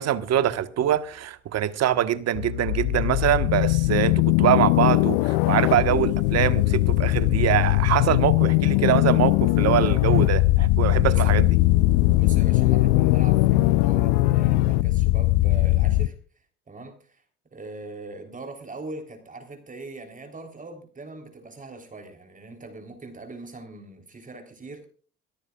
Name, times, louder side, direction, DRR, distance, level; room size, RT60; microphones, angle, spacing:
voice 1, 0.0-11.5, right 11 dB, 50° right, 1.4 m, -24 dB
sound 1, 2.4-16.1, left 18 dB, 70° left, 0.6 m, -20 dB
voice 2, 11.1-11.4 12.2-16.1 16.7-17.2 17.5-24.9, right 2 dB, 25° right, 3.6 m, -41 dB
27.0 x 13.5 x 2.4 m
hypercardioid pair, 75°, 33 cm